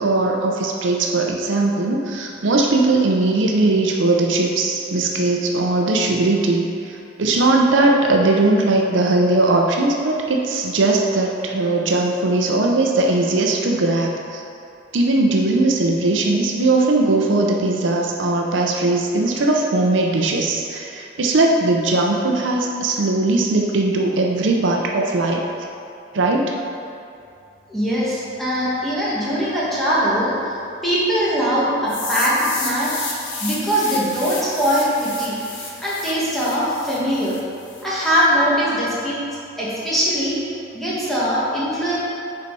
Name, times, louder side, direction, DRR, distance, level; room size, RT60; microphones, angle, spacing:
voice 1, 0.0-14.4 14.9-25.4 26.1-26.5, right 2 dB, 70° right, 0 dB, 0.6 m, -19 dB
voice 2, 27.7-30.5 30.8-32.9 33.4-35.4 35.8-37.4 37.8-39.2 39.6-40.4 40.7-42.0, equal, ahead, -9 dB, 1.5 m, -21 dB
sound 1, 31.9-37.8, left 4 dB, 70° left, 1.2 m, -31 dB
7.0 x 4.1 x 4.7 m, 2.7 s
head